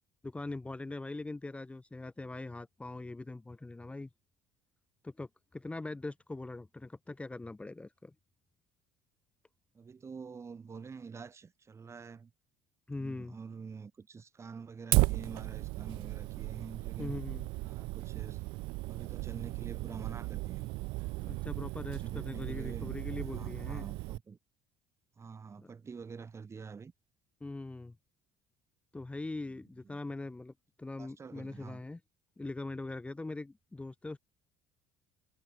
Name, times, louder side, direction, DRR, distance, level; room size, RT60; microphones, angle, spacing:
voice 1, 0.2-4.1 5.0-8.1 12.9-13.4 17.0-17.5 21.2-23.9 25.6-25.7 27.4-28.0 28.9-32.0 32.4-34.2, left 2 dB, 15° left, 1.1 m, -42 dB
voice 2, 9.7-12.3 13.0-17.2 17.6-18.4 18.9-20.7 21.8-24.4 25.2-26.9 29.5-29.6 29.8-30.0 31.0-31.8, right 5 dB, 30° right, 2.7 m, -47 dB
Fire, 14.9-24.2, right 23 dB, 70° right, 0.4 m, -35 dB
hypercardioid pair, 70°, 9 cm